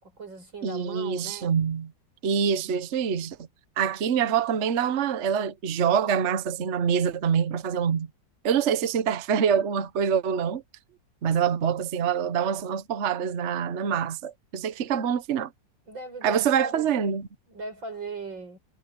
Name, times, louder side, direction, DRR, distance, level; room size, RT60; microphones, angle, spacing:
voice 1, 0.0-1.6 10.9-11.0 15.9-17.2 17.5-18.6, right 3 dB, 90° right, 6.7 m, -39 dB
voice 2, 0.6-1.9 2.2-3.4 3.8-8.1 8.4-10.6 11.2-15.5 16.2-17.2, right 7 dB, 45° right, 1.1 m, -25 dB
omnidirectional pair, 2.0 m